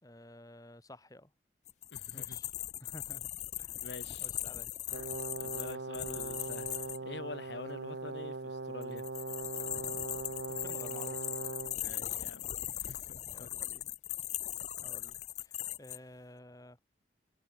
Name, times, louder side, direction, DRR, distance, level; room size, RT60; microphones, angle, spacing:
voice 1, 0.0-1.3 2.1-2.5 2.8-3.3 3.6-3.9 4.2-4.7 10.5-11.3 13.1-13.9 14.8-16.8, left 1 dB, 20° left, 2.4 m, -53 dB
sound 1, 1.7-7.0 8.8-16.0, left 13 dB, 40° left, 0.5 m, -39 dB
voice 2, 1.9-2.4 3.8-4.3 5.4-9.0 11.7-12.5 12.7-13.5, left 3 dB, 75° left, 1.5 m, -46 dB
Brass instrument, 4.9-11.8, right 3 dB, 80° right, 1.0 m, -40 dB
head